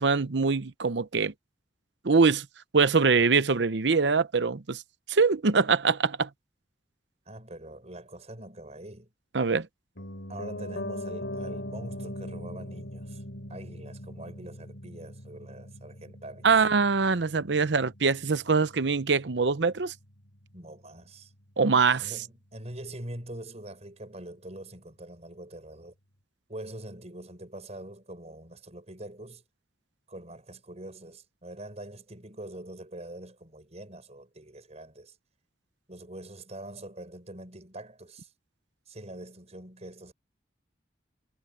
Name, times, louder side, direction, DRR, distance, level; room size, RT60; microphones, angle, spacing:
voice 1, 0.0-1.3 2.0-2.5 2.7-4.8 5.1-6.3 9.3-9.7 16.4-19.9 21.6-22.1, right 4 dB, 75° right, 0.8 m, -23 dB
voice 2, 7.3-9.1 10.3-13.2 13.5-16.5 20.5-21.3 22.0-25.9 26.5-29.4 30.1-35.1 35.9-38.3 38.9-40.1, right 1 dB, 40° right, 6.4 m, -44 dB
Piano, 10.0-20.0 20.3-20.4, left 1 dB, 80° left, 6.2 m, -40 dB
head